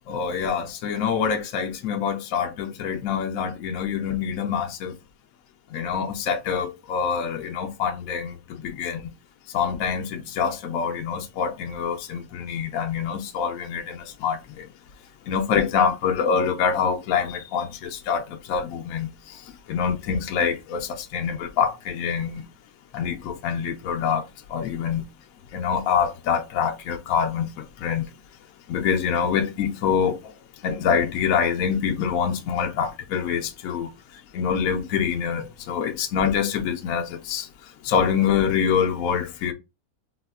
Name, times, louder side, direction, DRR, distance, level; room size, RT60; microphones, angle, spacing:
voice 1, 0.1-4.9 5.7-9.0 9.5-14.7 15.3-19.4 19.7-22.4 22.9-24.2 24.5-25.0 25.5-28.1 28.7-30.2 30.6-33.9 34.3-37.5 37.8-39.5, left 7 dB, 70° left, 0.9 m, -25 dB
4.1 x 2.3 x 2.3 m
omnidirectional pair, 1.6 m